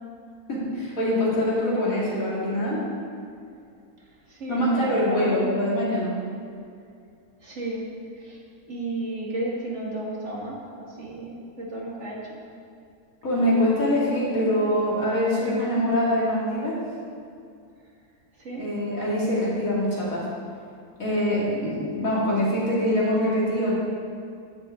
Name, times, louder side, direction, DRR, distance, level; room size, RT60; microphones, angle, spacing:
voice 1, 0.5-2.8 4.5-6.1 13.2-16.8 18.5-20.3 21.0-23.7, left 1 dB, 65° left, -7 dB, 3.0 m, -24 dB
voice 2, 4.3-5.6 7.4-7.8 8.1-8.4 8.7-12.4 15.3-15.9 18.4-18.6, right 1 dB, 50° right, -3 dB, 2.1 m, -33 dB
14.0 x 8.0 x 3.7 m, 2.4 s
omnidirectional pair, 1.5 m